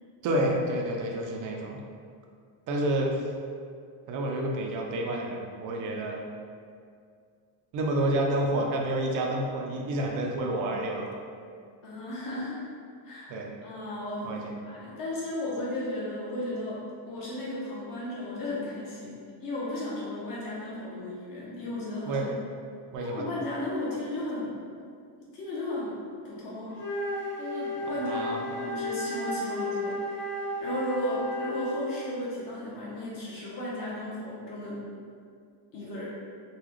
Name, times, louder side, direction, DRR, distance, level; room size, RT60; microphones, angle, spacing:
voice 1, 0.2-1.8 2.7-3.2 4.1-6.2 7.7-11.1 13.3-13.5 14.2-14.5 22.1-22.3 22.9-23.3 28.0-28.4, right 1 dB, 45° right, 0 dB, 0.4 m, -29 dB
voice 2, 11.8-12.6 13.0-22.3 23.0-24.5 25.3-26.0 26.2-26.8 27.4-30.0 30.6-34.8 35.7-36.1, left 1 dB, 45° left, -7 dB, 1.0 m, -35 dB
Wind instrument woodwind instrument, 26.7-31.9, left 1 dB, 25° left, 1.1 m, -33 dB
3.9 x 2.3 x 3.0 m, 2.2 s
cardioid pair, 155°, 48 cm